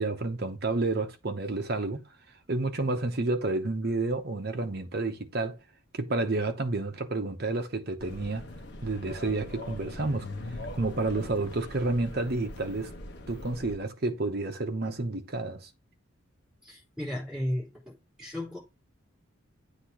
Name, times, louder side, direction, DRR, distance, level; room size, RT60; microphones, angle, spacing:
voice 1, 0.0-2.1 2.5-5.6 5.9-8.5 8.8-10.3 10.7-12.9 13.3-15.7, right 2 dB, 45° right, 0.9 m, -30 dB
sound 1, 8.0-13.8, left 1 dB, 50° left, 1.0 m, -41 dB
voice 2, 16.6-18.6, left 1 dB, 5° right, 3.8 m, -35 dB
8.2 x 2.8 x 5.7 m
head